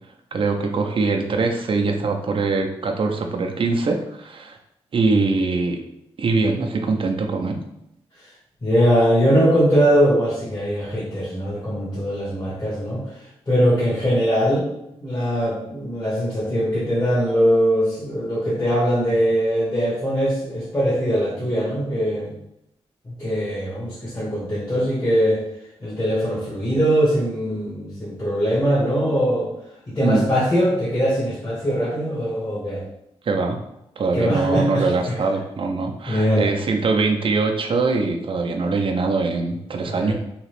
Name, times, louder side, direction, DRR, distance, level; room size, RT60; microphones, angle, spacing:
voice 1, 0.3-4.6 4.9-5.8 6.2-7.6 30.0-30.3 33.3-33.6 34.0-40.1, right 3 dB, 55° right, 3 dB, 0.5 m, -22 dB
voice 2, 8.6-13.0 13.5-14.7 15.0-22.3 23.0-25.4 25.8-29.5 29.9-32.8 34.1-35.2 36.1-36.5 39.9-40.1, equal, 30° left, -9 dB, 1.2 m, -21 dB
2.9 x 2.4 x 3.2 m, 0.82 s
cardioid pair, 65°, 11 cm